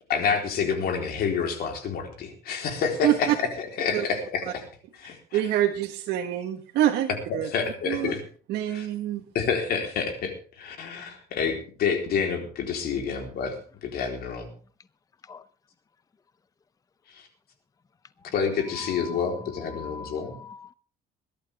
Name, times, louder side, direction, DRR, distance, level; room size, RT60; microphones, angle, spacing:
voice 1, 0.1-4.6 5.0-5.4 7.3-8.2 8.7-8.9 9.3-13.6 13.8-14.5 17.1-17.3 18.3-20.4, left 6 dB, 65° left, 4.0 m, -28 dB
voice 2, 3.0-3.3 3.9-4.0 5.3-8.1 8.5-9.2, right 12 dB, 80° right, 1.5 m, -26 dB
voice 3, 18.7-20.7, left 4 dB, 20° left, 0.6 m, -42 dB
22.0 x 12.0 x 3.6 m
cardioid pair, 110°, 17 cm